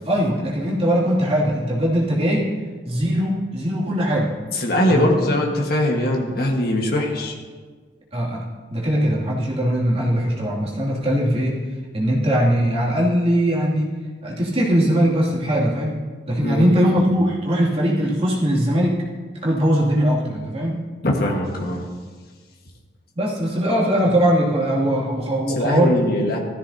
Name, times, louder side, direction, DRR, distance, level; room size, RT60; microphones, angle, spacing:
voice 1, 0.0-2.5 2.8-4.3 4.9-5.1 8.1-8.4 8.7-11.6 11.9-13.9 14.2-16.0 16.3-19.0 19.4-20.8 23.2-26.0, equal, 30° right, -5 dB, 2.5 m, -20 dB
voice 2, 4.5-7.3 16.4-16.9 21.0-21.8 25.5-26.4, left 1 dB, 55° left, 0 dB, 1.5 m, -21 dB
15.5 x 13.5 x 2.8 m, 1.5 s
head